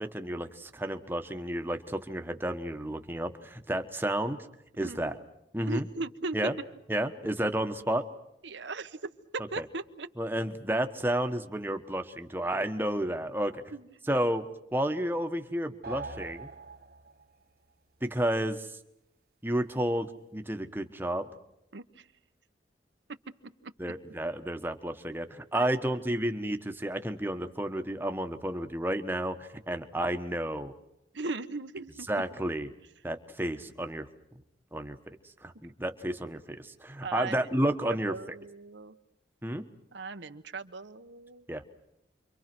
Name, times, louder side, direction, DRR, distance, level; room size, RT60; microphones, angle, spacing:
voice 1, 0.0-4.4 4.8-5.2 5.5-5.9 6.3-6.5 6.9-8.0 9.6-9.7 10.2-13.6 14.1-14.4 14.7-16.5 18.0-18.7 19.4-20.1 20.3-21.3 23.8-30.7 32.1-32.7 33.0-34.1 34.7-35.0 35.4-38.4 39.4-39.7 41.5-41.6, right 1 dB, 10° right, 7 dB, 1.2 m, -31 dB
voice 2, 5.7-6.4 8.4-9.0 9.3-10.1 13.7-13.9 21.7-22.0 25.5-25.7 31.1-32.1 37.0-37.7 38.1-38.9 39.9-41.5, right 3 dB, 75° right, 9 dB, 1.1 m, -38 dB
sound 1, 15.8-17.3, right 3 dB, 55° right, 1.3 m, -42 dB
29.0 x 24.0 x 6.1 m, 0.82 s
head